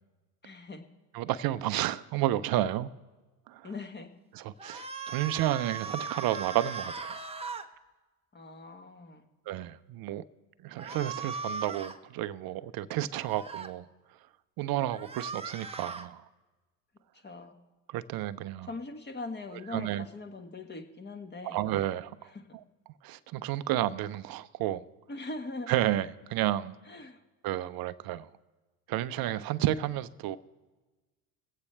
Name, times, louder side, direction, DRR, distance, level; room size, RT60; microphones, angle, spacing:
voice 1, 0.4-0.9 3.6-4.1 8.3-9.3 17.2-17.5 18.6-21.6 22.3-22.6 25.1-25.7 26.9-27.2, left 3 dB, 20° left, 1.4 m, -41 dB
voice 2, 1.1-2.9 3.5-3.7 4.3-7.2 9.5-10.2 10.6-13.9 14.6-16.2 17.9-18.7 19.7-20.1 21.4-22.3 23.0-24.8 25.7-26.8 27.4-28.3 28.9-30.4, right 13 dB, 50° right, 0.6 m, -31 dB
sound 1, 4.6-7.7 10.8-12.0 13.1-13.7 14.9-16.1, right 4 dB, 15° right, 0.7 m, -39 dB
22.5 x 8.3 x 3.3 m
hypercardioid pair, 75°, 47 cm